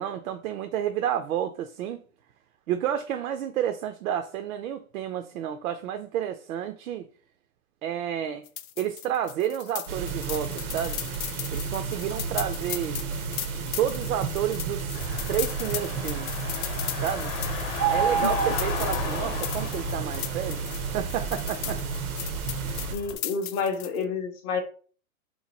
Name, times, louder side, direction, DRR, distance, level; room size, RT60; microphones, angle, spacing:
voice 1, 0.0-2.0 2.7-7.1 7.8-8.5 8.8-11.0 11.5-13.0 13.8-16.3 17.0-17.3 17.9-20.6 20.9-21.8 22.7-23.0, right 10 dB, 75° right, 0.5 m, -30 dB
sound 1, 8.5-24.0, left 12 dB, 75° left, 0.5 m, -37 dB
sound 2, 9.9-22.9, right 6 dB, 90° right, 0.8 m, -31 dB
Car / Engine, 14.9-23.1, left 5 dB, 40° left, 0.8 m, -35 dB
voice 2, 22.9-24.6, left 5 dB, 25° left, 0.4 m, -29 dB
3.1 x 2.2 x 4.0 m
hypercardioid pair, 140°, 43 cm